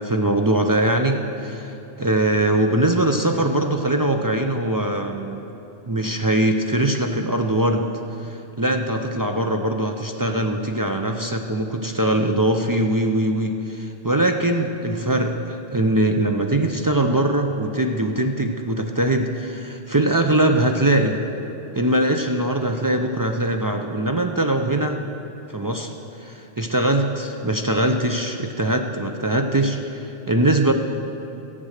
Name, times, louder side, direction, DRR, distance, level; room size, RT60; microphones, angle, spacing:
voice 1, 0.0-5.4 5.9-7.9 8.2-21.2 21.7-25.0 25.5-25.9 26.2-30.7, right 1 dB, 35° right, 4 dB, 0.3 m, -22 dB
13.5 x 8.8 x 6.5 m, 2.9 s
omnidirectional pair, 1.3 m